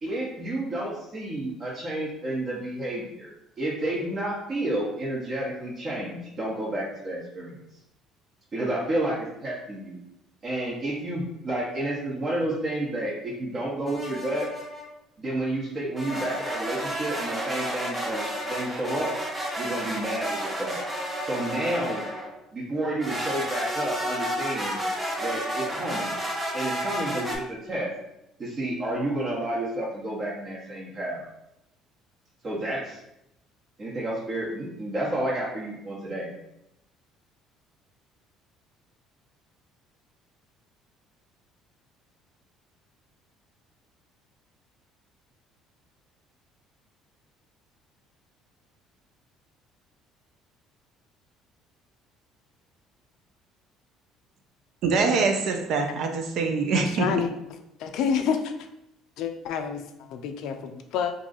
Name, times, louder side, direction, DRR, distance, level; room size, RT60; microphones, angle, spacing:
voice 1, 0.0-3.3 3.6-7.6 8.5-10.0 10.4-14.5 15.2-19.1 19.6-20.8 21.3-22.0 22.5-24.8 25.2-26.1 26.5-27.9 28.4-31.3 32.4-33.0 33.8-36.3, right 1 dB, 45° right, 0.9 m, -30 dB
sound 1, 13.9-14.9 16.0-22.4 23.0-27.4, equal, 15° right, 0.9 m, -31 dB
voice 2, 54.8-57.1, right 4 dB, 65° right, 0.4 m, -24 dB
voice 3, 56.7-57.3 57.8-58.5 59.2-59.8 60.1-61.1, left 7 dB, 70° left, 0.3 m, -28 dB
2.6 x 2.3 x 3.9 m
hypercardioid pair, 65°, 0 cm